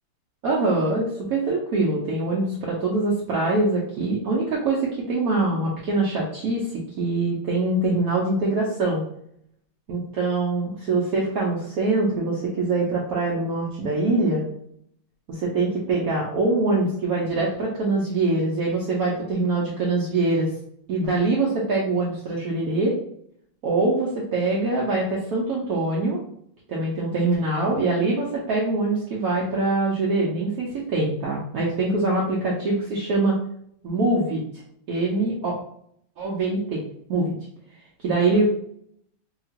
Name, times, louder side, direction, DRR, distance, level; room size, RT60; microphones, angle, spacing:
voice 1, 0.4-6.7 7.0-9.0 9.9-14.4 15.3-20.5 20.9-23.0 23.6-26.2 26.7-33.4 33.8-34.4 34.9-35.6 36.2-36.8 37.1-37.3 38.0-38.4, right 2 dB, 80° right, -5 dB, 0.8 m, -23 dB
2.9 x 2.8 x 2.8 m, 0.67 s
omnidirectional pair, 2.3 m